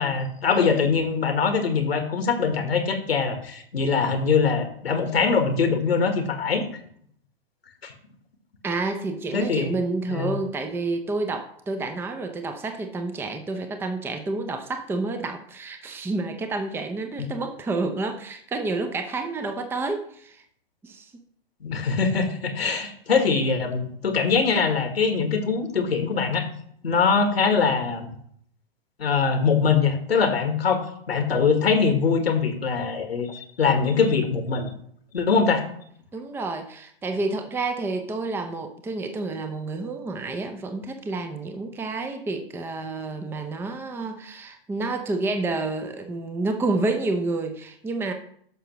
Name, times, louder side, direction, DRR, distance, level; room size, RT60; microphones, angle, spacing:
voice 1, 0.0-6.7 7.8-7.9 9.3-9.7 10.1-10.3 21.6-26.5 26.8-28.1 29.0-34.7 35.1-35.7, left 5 dB, 85° left, 7 dB, 1.5 m, -23 dB
voice 2, 8.6-20.4 20.8-21.1 36.1-48.1, right 3 dB, 10° right, 6 dB, 0.6 m, -29 dB
11.0 x 6.6 x 3.0 m, 0.64 s
hypercardioid pair, 115°, 30 cm